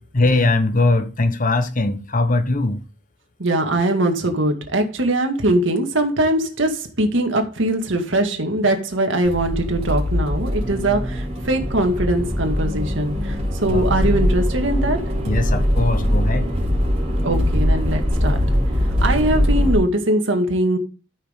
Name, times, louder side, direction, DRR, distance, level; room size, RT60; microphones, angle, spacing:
voice 1, 0.1-2.8 13.7-13.9 15.2-16.5, left 2 dB, 45° left, 1.1 m, -20 dB
voice 2, 3.4-13.1 13.6-15.0 17.2-18.4 19.0-20.8, right 1 dB, 75° right, 2.1 m, -21 dB
Accelerating revving vroom, 9.2-19.8, equal, 35° right, 3.6 m, -21 dB
13.5 x 6.3 x 3.8 m
head